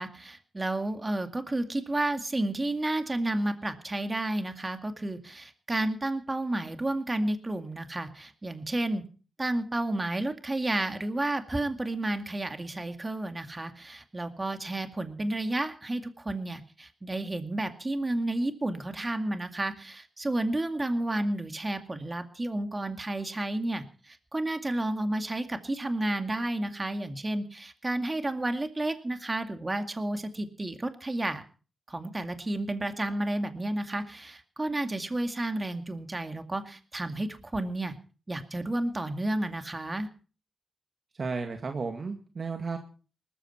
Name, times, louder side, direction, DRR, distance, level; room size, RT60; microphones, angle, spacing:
voice 1, 0.0-9.0 9.4-31.4 31.9-37.9 38.3-40.1, right 1 dB, 30° right, 7 dB, 2.2 m, -31 dB
voice 2, 41.1-42.8, right 4 dB, 60° right, 5 dB, 2.0 m, -33 dB
19.5 x 14.0 x 4.4 m, 0.38 s
cardioid pair, 50°, 0 cm